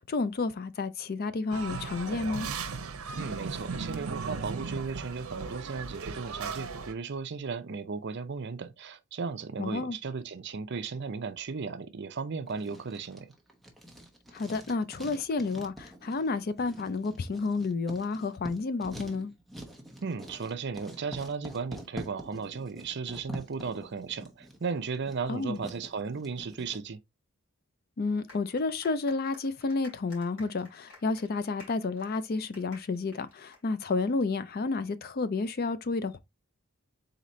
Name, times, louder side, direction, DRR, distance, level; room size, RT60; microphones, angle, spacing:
voice 1, 0.0-2.5 9.6-10.0 14.3-19.3 25.3-25.6 28.0-36.2, left 3 dB, 45° left, 0.4 m, -31 dB
sound 1, 1.5-6.9, right 4 dB, 80° right, 0.8 m, -37 dB
voice 2, 3.2-13.3 20.0-27.0, right 5 dB, 55° right, 0.6 m, -36 dB
Writing, 12.5-26.8, equal, ahead, 0.9 m, -46 dB
sound 2, 28.3-34.2, left 2 dB, 70° left, 2.9 m, -54 dB
4.2 x 4.0 x 3.0 m
head